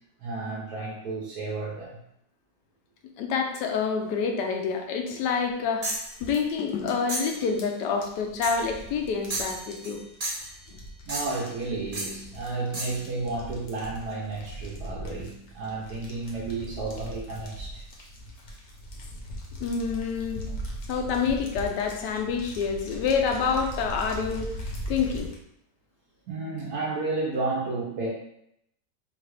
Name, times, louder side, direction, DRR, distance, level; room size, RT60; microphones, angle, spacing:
voice 1, 0.2-2.0 11.0-17.8 26.3-28.1, right 3 dB, 65° right, -5 dB, 1.2 m, -32 dB
voice 2, 3.2-5.9 6.2-10.0 10.7-10.8 19.6-20.5 20.9-24.5 24.9-25.3, left 5 dB, 75° left, 4 dB, 1.2 m, -27 dB
sound 1, 5.8-6.1 7.1-7.4 8.4-8.7 9.3-10.0 10.2-10.5 11.1-11.5 11.9-12.2 12.7-13.0, right 1 dB, 30° right, 0.7 m, -33 dB
sound 2, 5.9-25.3, equal, 50° left, 1.0 m, -40 dB
4.0 x 2.5 x 4.7 m, 0.76 s
omnidirectional pair, 1.9 m